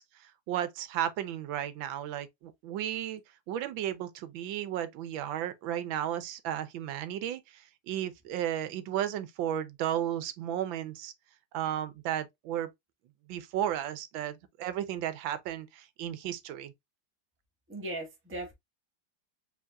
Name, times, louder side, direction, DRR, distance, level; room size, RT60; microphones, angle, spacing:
voice 1, 0.0-3.2 3.5-11.1 11.5-12.7 13.3-16.7, right 11 dB, 80° right, 1.5 m, -34 dB
voice 2, 17.7-18.5, right 1 dB, 10° right, 1.1 m, -38 dB
4.9 x 3.5 x 2.3 m
omnidirectional pair, 2.1 m